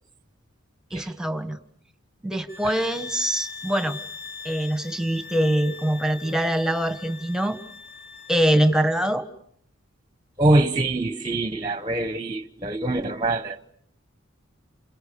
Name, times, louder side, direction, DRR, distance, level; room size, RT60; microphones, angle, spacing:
voice 1, 0.9-1.6 2.2-4.0 4.4-7.6 8.3-9.2, right 1 dB, 5° right, 1.6 m, -23 dB
sound 1, 2.5-8.9, left 5 dB, 45° left, 4.6 m, -41 dB
voice 2, 10.4-13.6, right 2 dB, 20° right, 1.1 m, -23 dB
29.5 x 28.0 x 7.0 m
head